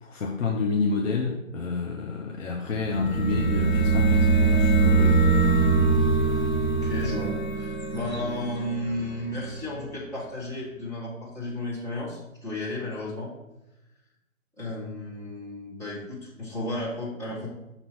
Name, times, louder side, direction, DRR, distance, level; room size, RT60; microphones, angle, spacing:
voice 1, 0.0-5.2, left 4 dB, 65° left, 1 dB, 0.8 m, -29 dB
sound 1, 2.7-9.4, right 4 dB, 90° left, 1.9 m, -23 dB
voice 2, 6.8-13.3 14.6-17.5, left 1 dB, 5° left, -7 dB, 1.1 m, -33 dB
6.1 x 2.8 x 5.5 m, 0.95 s
figure-of-eight pair, 130°, 41 cm